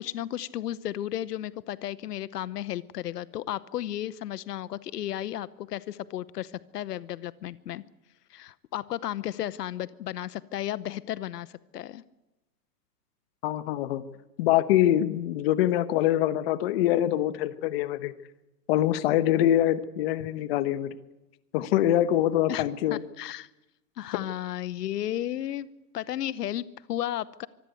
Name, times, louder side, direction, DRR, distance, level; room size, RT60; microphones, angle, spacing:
voice 1, 0.0-7.8 8.3-12.0 22.5-23.5 24.0-25.7 25.9-27.5, left 12 dB, 75° left, 17 dB, 0.9 m, -34 dB
voice 2, 13.4-14.0 14.4-18.1 18.7-20.9 21.5-23.0, left 12 dB, 40° left, 13 dB, 1.1 m, -24 dB
24.5 x 15.0 x 9.3 m, 0.99 s
hypercardioid pair, 155°, 48 cm